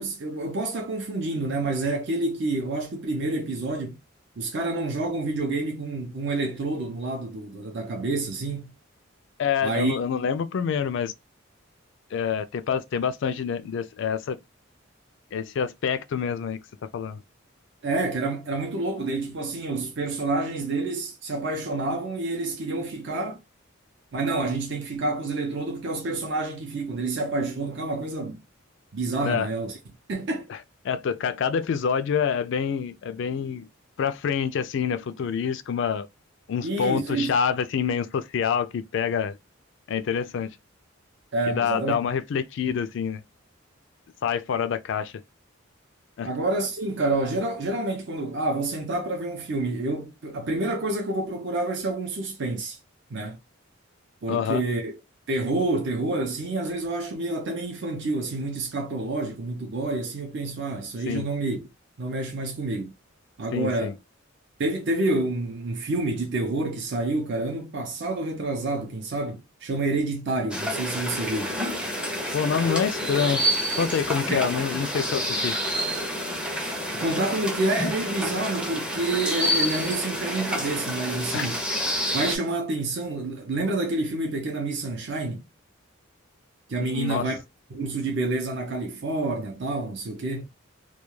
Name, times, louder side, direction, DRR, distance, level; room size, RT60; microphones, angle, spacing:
voice 1, 0.0-4.0 4.4-8.7 9.6-10.0 17.8-23.4 24.1-28.4 28.9-29.8 30.1-30.5 36.6-37.3 41.3-42.0 46.2-52.8 53.1-53.4 54.2-54.9 55.3-61.6 62.0-62.9 63.4-63.9 64.6-71.5 74.3-74.5 76.9-81.6 82.1-85.4 86.7-87.4 87.7-90.4, right 2 dB, 55° right, 0.6 m, -28 dB
voice 2, 9.4-11.1 12.1-14.4 15.3-16.6 16.9-17.2 29.2-29.5 30.5-30.6 30.8-33.7 34.0-36.1 36.5-39.4 39.9-40.6 41.5-43.2 44.2-45.1 46.2-46.3 54.3-54.6 61.1-61.2 63.5-63.9 72.3-73.5 73.7-75.6 81.3-81.5 86.8-87.2, left 7 dB, 60° left, 0.3 m, -27 dB
sound 1, 70.5-82.4, equal, 5° right, 0.5 m, -28 dB
2.2 x 2.2 x 3.0 m
head